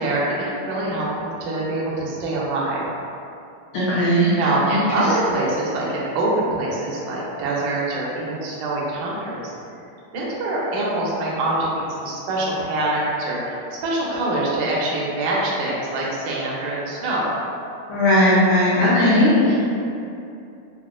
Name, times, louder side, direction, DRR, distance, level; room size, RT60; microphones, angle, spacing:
voice 1, 0.0-2.9 4.4-9.5 10.1-17.3, right 2 dB, 80° right, -5 dB, 2.0 m, -24 dB
voice 2, 3.7-4.3 4.7-4.8 17.9-19.5, left 1 dB, 85° left, -12 dB, 1.7 m, -17 dB
5.8 x 2.1 x 2.4 m, 2.6 s
omnidirectional pair, 4.4 m